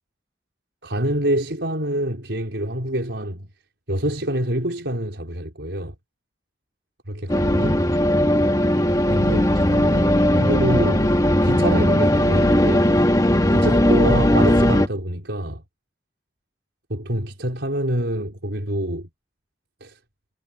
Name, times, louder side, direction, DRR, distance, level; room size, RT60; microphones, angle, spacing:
voice 1, 0.8-3.5 3.9-5.9 7.1-7.8 9.1-11.1 11.4-12.9 13.5-15.6 16.9-19.1 19.8-19.9, right 1 dB, 90° right, 4.8 m, -26 dB
sound 1, 7.3-14.9, left 1 dB, 20° left, 1.6 m, -18 dB
head